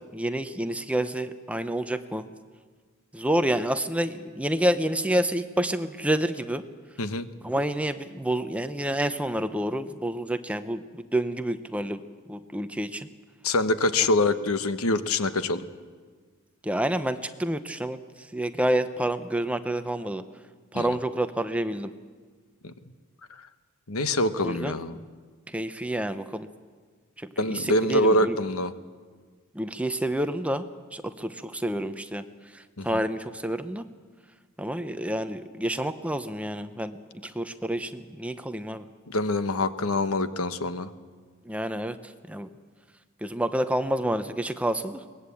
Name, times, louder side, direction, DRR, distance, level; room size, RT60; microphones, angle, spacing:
voice 1, 0.1-2.2 3.1-6.6 7.4-12.0 12.3-13.1 16.6-18.0 18.3-20.2 20.7-21.9 24.4-24.8 25.5-26.5 27.2-28.4 29.5-30.6 30.9-32.2 32.5-33.8 34.6-37.0 37.2-38.9 41.5-42.5 43.2-45.0, right 1 dB, 5° right, 9 dB, 0.8 m, -28 dB
voice 2, 13.4-15.6 20.7-20.9 22.6-22.7 23.9-25.0 27.4-28.7 32.8-33.0 39.1-40.9, left 1 dB, 80° left, 11 dB, 1.2 m, -25 dB
22.5 x 20.0 x 8.5 m, 1.5 s
head